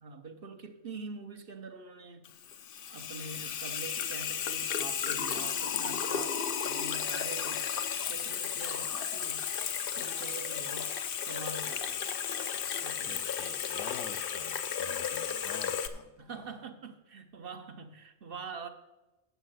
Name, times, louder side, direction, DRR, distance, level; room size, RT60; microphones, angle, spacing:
voice 1, 0.0-2.6 2.9-6.4 6.7-7.7 8.0-9.5 10.0-12.0 12.8-13.2 14.4-14.5 16.2-18.7, right 4 dB, 55° right, 7 dB, 0.8 m, -45 dB
Water tap faucet / Sink (filling or washing), 2.2-15.9, left 8 dB, 55° left, 0.7 m, -34 dB
voice 2, 13.1-16.1, left 6 dB, 80° left, 9 dB, 1.2 m, -48 dB
8.1 x 6.5 x 7.6 m, 1.0 s
omnidirectional pair, 1.3 m